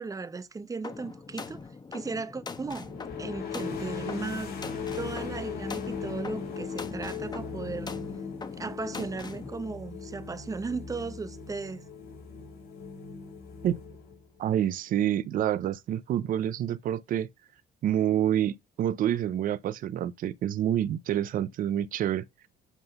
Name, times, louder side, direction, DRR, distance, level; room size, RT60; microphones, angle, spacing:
voice 1, 0.0-1.7 1.9-2.9 3.2-4.6 5.0-7.9 8.5-11.8, right 4 dB, 20° right, 0.8 m, -36 dB
sound 1, 0.8-9.5, left 4 dB, 25° left, 1.1 m, -42 dB
sound 2, 2.8-14.4, left 5 dB, 65° left, 3.4 m, -38 dB
voice 2, 14.4-17.3 17.8-22.2, right 11 dB, 55° right, 0.6 m, -27 dB
8.2 x 3.7 x 5.3 m
cardioid pair, 110°, 17 cm